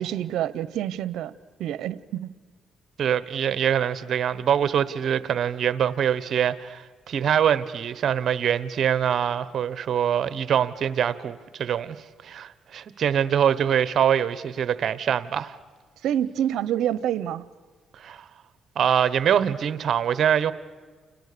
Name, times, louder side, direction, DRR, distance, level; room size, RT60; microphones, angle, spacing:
voice 1, 0.0-1.3 1.6-2.3 16.0-17.5, right 11 dB, 80° right, 0.9 m, -27 dB
voice 2, 3.0-12.0 12.2-15.6 17.9-18.3 18.7-20.5, right 9 dB, 60° right, 1.2 m, -24 dB
29.5 x 29.5 x 6.9 m
cardioid pair, 90°, 0 cm